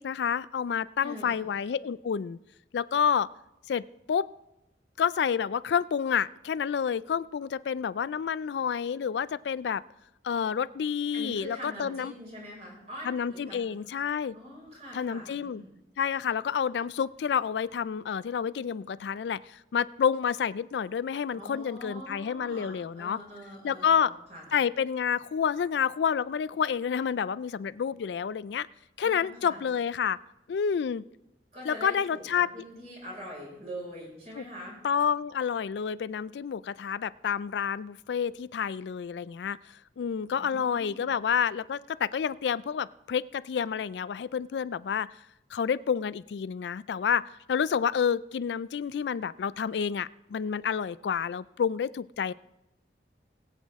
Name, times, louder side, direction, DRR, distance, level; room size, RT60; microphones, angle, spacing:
voice 1, 0.0-2.4 2.7-3.3 3.7-4.3 5.0-9.8 10.2-12.1 13.0-14.4 14.9-15.6 16.0-23.2 23.6-24.1 24.5-28.7 29.0-30.2 30.5-31.0 31.7-32.5 34.4-34.5 34.8-45.1 45.5-52.3, left 7 dB, 75° left, 17 dB, 0.3 m, -29 dB
voice 2, 1.0-1.4 11.1-13.8 14.3-15.7 21.3-24.5 29.0-29.6 31.5-34.8 40.3-41.1, equal, 40° right, -4 dB, 5.4 m, -44 dB
21.0 x 8.3 x 3.6 m, 0.90 s
head